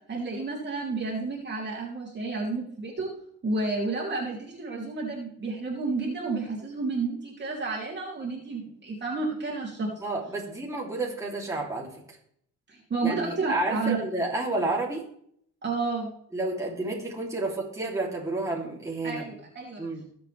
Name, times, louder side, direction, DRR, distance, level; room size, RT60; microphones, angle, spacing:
voice 1, 0.1-3.1 3.4-9.9 12.7-14.0 15.6-16.1 19.0-19.8, right 3 dB, 30° right, -3 dB, 3.2 m, -31 dB
voice 2, 10.0-11.9 13.0-15.0 16.3-19.3 19.8-20.0, right 2 dB, 10° right, -3 dB, 3.1 m, -30 dB
21.5 x 7.7 x 3.4 m, 0.67 s
cardioid pair, 120°, 33 cm